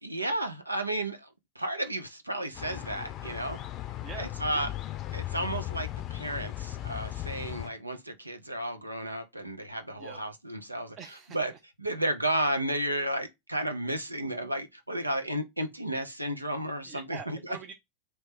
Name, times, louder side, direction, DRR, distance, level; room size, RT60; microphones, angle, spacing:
voice 1, 0.0-1.3 1.6-3.6 4.2-4.7 5.1-11.0 11.3-11.5 11.8-17.6, right 1 dB, 85° right, 0.7 m, -33 dB
sound 1, 2.5-7.7, left 14 dB, 35° left, 0.5 m, -37 dB
voice 2, 4.0-4.7 10.0-10.2 11.0-11.4 16.8-17.7, right 7 dB, 30° right, 0.6 m, -44 dB
3.1 x 3.1 x 4.7 m
figure-of-eight pair, 90°, 0 cm